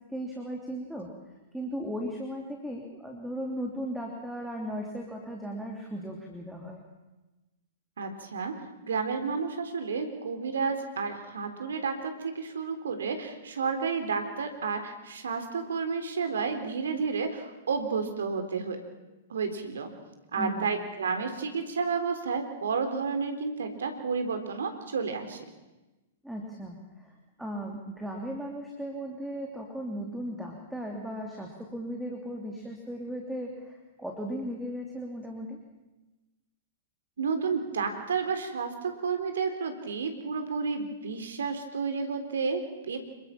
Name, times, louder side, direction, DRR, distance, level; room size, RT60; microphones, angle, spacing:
voice 1, 0.1-1.1 1.5-6.8 20.4-20.7 26.2-27.1 27.4-35.6, equal, ahead, 0 dB, 3.1 m, -36 dB
voice 2, 8.0-8.5 8.8-18.8 19.3-19.9 20.3-25.4 37.2-43.0, right 5 dB, 65° right, 7 dB, 3.5 m, -31 dB
26.5 x 22.5 x 6.0 m, 1.1 s
figure-of-eight pair, 105°, 0 cm